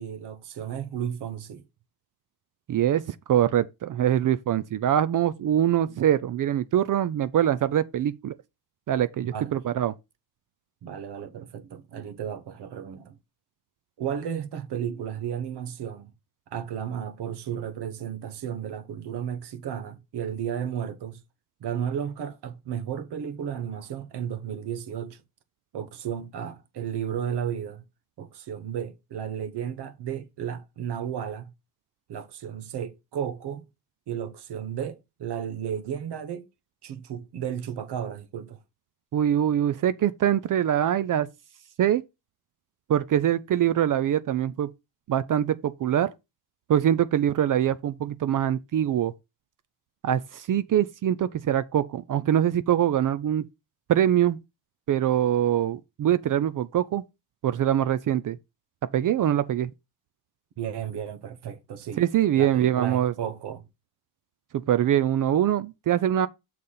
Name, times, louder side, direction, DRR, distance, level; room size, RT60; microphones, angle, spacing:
voice 1, 0.0-1.6 9.3-9.6 10.8-13.2 14.0-16.1 16.5-21.2 21.6-25.2 25.7-27.8 28.2-31.5 32.1-33.7 34.1-36.5 36.8-38.6 60.6-62.0 62.4-63.6, right 8 dB, 70° right, 1.3 m, -33 dB
voice 2, 2.7-8.3 8.9-9.9 39.1-41.3 41.8-42.0 42.9-44.7 45.1-46.1 46.7-49.1 50.0-53.4 53.9-54.4 54.9-57.0 57.4-58.4 58.9-59.7 62.0-63.1 64.7-66.3, right 10 dB, 50° right, 0.5 m, -23 dB
6.8 x 4.1 x 5.5 m
cardioid pair, 105°, 41 cm